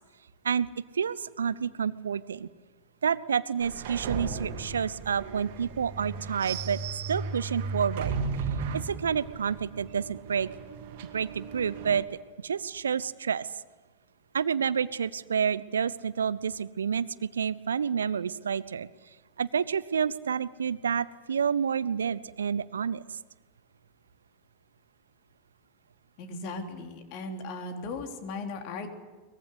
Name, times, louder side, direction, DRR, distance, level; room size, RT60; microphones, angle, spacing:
voice 1, 0.9-2.5 3.0-6.8 7.1-8.2 8.7-10.5 11.1-12.1 12.4-13.5 14.3-18.9 19.4-23.2, right 7 dB, 70° right, 19 dB, 0.8 m, -29 dB
sound 1, 3.6-12.0, right 5 dB, 50° right, 2.3 m, -36 dB
voice 2, 26.2-28.9, left 3 dB, 45° left, 4 dB, 3.5 m, -37 dB
23.5 x 21.0 x 8.2 m, 1.3 s
figure-of-eight pair, 90°, 0 cm